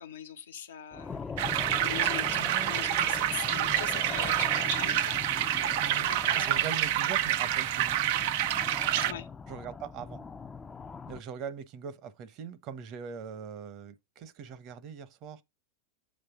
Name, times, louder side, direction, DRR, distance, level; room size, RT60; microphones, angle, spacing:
voice 1, 0.0-1.3 1.8-5.2 5.9-6.7 9.0-9.3, left 8 dB, 85° left, 1.1 m, -41 dB
sound 1, 0.9-11.2, left 5 dB, 20° left, 0.5 m, -41 dB
sound 2, 1.4-9.1, right 12 dB, 65° right, 0.5 m, -28 dB
voice 2, 2.4-2.7 5.8-6.1 6.4-8.0 9.5-10.3 11.1-15.4, right 7 dB, 45° right, 1.1 m, -41 dB
7.6 x 3.2 x 6.0 m
hypercardioid pair, 105°, 0 cm